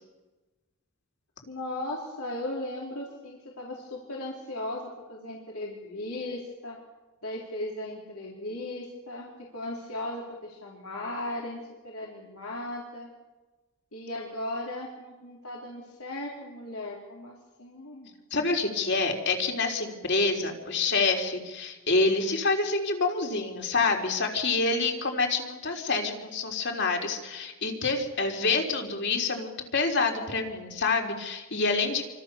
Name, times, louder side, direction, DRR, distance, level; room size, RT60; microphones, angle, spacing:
voice 1, 1.5-6.8 7.2-13.1 13.9-18.1, left 1 dB, 80° left, -2 dB, 4.5 m, -37 dB
voice 2, 18.3-32.0, left 3 dB, 55° left, 3 dB, 4.1 m, -27 dB
28.0 x 25.0 x 7.1 m, 1.2 s
head